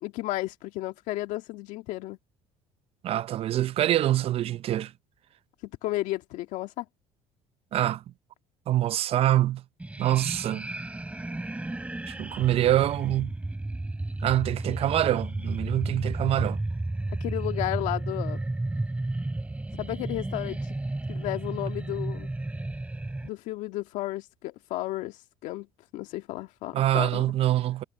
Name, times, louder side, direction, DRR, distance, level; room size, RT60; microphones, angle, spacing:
voice 1, 0.0-2.2 5.6-6.9 17.2-18.4 19.7-20.6 21.1-22.3 23.2-25.7 25.9-27.2, left 17 dB, 75° left, 1.9 m, -33 dB
voice 2, 3.0-4.9 7.7-8.0 8.7-9.6 10.0-10.7 12.1-13.3 14.2-16.6 26.7-27.8, right 13 dB, 50° right, 0.5 m, -25 dB
sound 1, 9.8-23.3, right 2 dB, 10° right, 3.8 m, -33 dB
cardioid pair, 105°, 13 cm